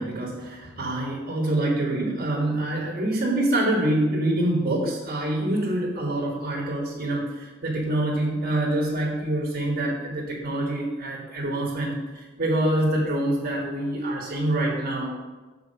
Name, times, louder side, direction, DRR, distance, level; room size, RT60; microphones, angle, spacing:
voice 1, 0.0-15.1, right 1 dB, 45° right, -2 dB, 1.4 m, -26 dB
6.8 x 4.6 x 5.6 m, 1.2 s
head